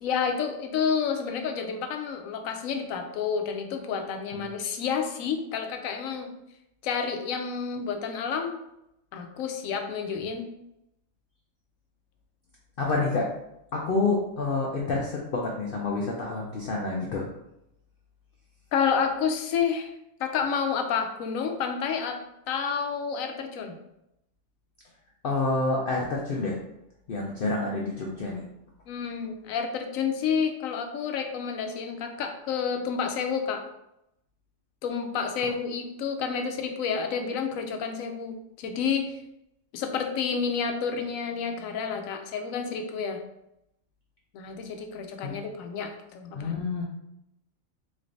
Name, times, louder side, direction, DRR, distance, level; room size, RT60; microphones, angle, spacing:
voice 1, 0.0-6.3 6.8-8.6 9.1-10.4 18.7-19.9 20.2-22.2 22.5-23.7 28.9-33.6 34.8-39.1 39.7-43.2 44.3-46.5, left 6 dB, 80° left, 5 dB, 1.0 m, -29 dB
voice 2, 12.8-13.3 13.7-17.3 25.2-26.6 27.1-28.4 45.2-45.4 46.3-46.8, left 3 dB, 55° left, -2 dB, 0.6 m, -28 dB
4.1 x 3.2 x 2.5 m, 0.83 s
omnidirectional pair, 1.4 m